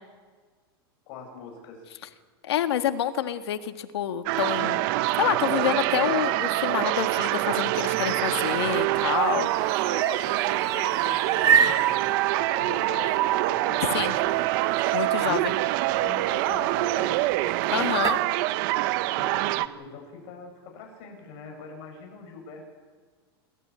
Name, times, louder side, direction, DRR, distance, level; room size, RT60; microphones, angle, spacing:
voice 1, 1.1-1.8 9.8-14.4 15.2-15.4 16.0-17.2 19.1-22.6, left 4 dB, 50° left, 1 dB, 7.9 m, -41 dB
voice 2, 2.4-4.8 5.2-9.8 13.9-14.1 14.9-15.5 17.7-18.2, left 10 dB, 85° left, 8 dB, 1.6 m, -28 dB
sound 1, 4.3-19.7, right 17 dB, 55° right, 0.9 m, -25 dB
sound 2, 8.1-18.2, right 7 dB, 25° right, 1.4 m, -31 dB
26.0 x 14.5 x 8.8 m, 1.5 s
supercardioid pair, 135°, 13 cm